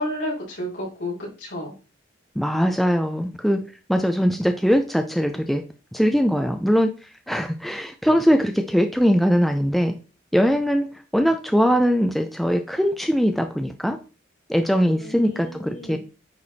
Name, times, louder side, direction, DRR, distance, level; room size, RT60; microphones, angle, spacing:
voice 1, 0.0-1.7 14.9-16.0, left 1 dB, 65° left, -5 dB, 5.1 m, -31 dB
voice 2, 2.4-5.6 5.9-6.9 7.3-9.9 10.3-10.9 11.1-14.0 14.5-16.0, equal, ahead, 5 dB, 0.6 m, -21 dB
9.7 x 4.8 x 4.2 m, 0.34 s
head